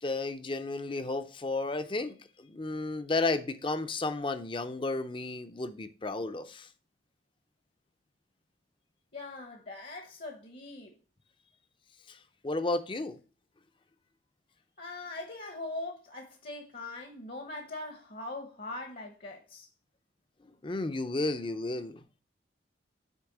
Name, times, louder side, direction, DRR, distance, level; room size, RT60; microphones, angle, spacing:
voice 1, 0.0-6.7 12.1-13.2 20.6-22.0, left 2 dB, 25° left, 0.5 m, -33 dB
voice 2, 9.1-10.9 14.8-19.7, left 2 dB, 50° left, 1.0 m, -41 dB
8.2 x 3.5 x 6.0 m
head